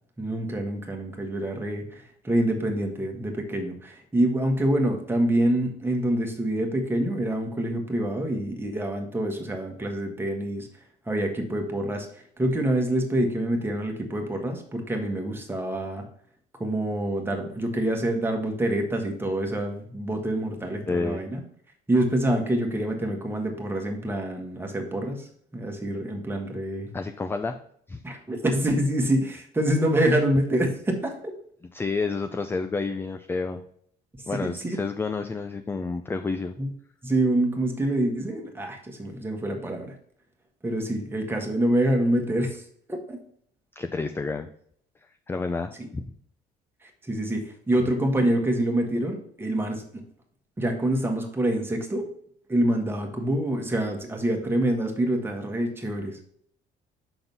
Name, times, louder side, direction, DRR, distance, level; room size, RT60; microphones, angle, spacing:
voice 1, 0.2-10.7 11.1-16.0 16.6-21.4 21.9-26.9 28.0-31.3 34.3-34.8 36.6-36.7 37.0-39.9 40.6-42.6 42.9-43.2 45.8-45.9 46.8-50.0 50.6-52.1 52.5-56.2, right 1 dB, 15° right, 2 dB, 1.5 m, -26 dB
voice 2, 20.9-21.2 26.9-27.6 27.9-28.0 31.7-33.6 34.3-36.6 43.8-44.5 45.3-46.0, left 4 dB, 15° left, 8 dB, 0.4 m, -29 dB
6.1 x 3.8 x 5.3 m, 0.63 s
cardioid pair, 110°, 17 cm